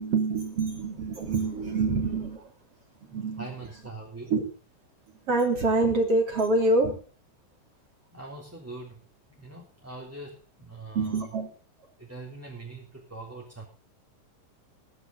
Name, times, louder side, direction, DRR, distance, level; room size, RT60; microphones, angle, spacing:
voice 1, 0.0-2.5 3.0-3.5 4.3-4.4 5.3-7.0 10.9-11.5, right 3 dB, 45° right, 3 dB, 3.9 m, -26 dB
voice 2, 3.4-4.3 8.1-9.0 9.3-11.2 12.0-13.6, right 2 dB, 5° right, -2 dB, 3.1 m, -42 dB
21.0 x 10.5 x 4.0 m, 0.37 s
omnidirectional pair, 4.0 m